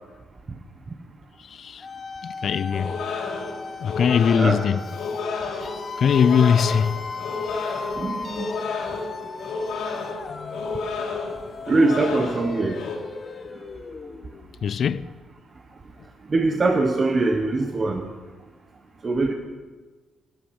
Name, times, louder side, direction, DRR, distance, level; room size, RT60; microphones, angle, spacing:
voice 1, 1.5-1.8 2.2-3.0 3.8-4.8 5.6-5.7 6.0-7.0 10.3-10.7 14.6-15.1, left 7 dB, 55° left, 0.5 m, -21 dB
sound 1, 1.8-14.6, left 4 dB, 40° left, 1.1 m, -37 dB
sound 2, 2.7-13.0, left 4 dB, 85° left, 3.1 m, -31 dB
voice 2, 7.9-8.5 11.7-12.8 16.3-18.1 19.0-19.3, right 3 dB, 35° right, 1.3 m, -22 dB
13.0 x 11.5 x 6.3 m
cardioid pair, 90°, 0 cm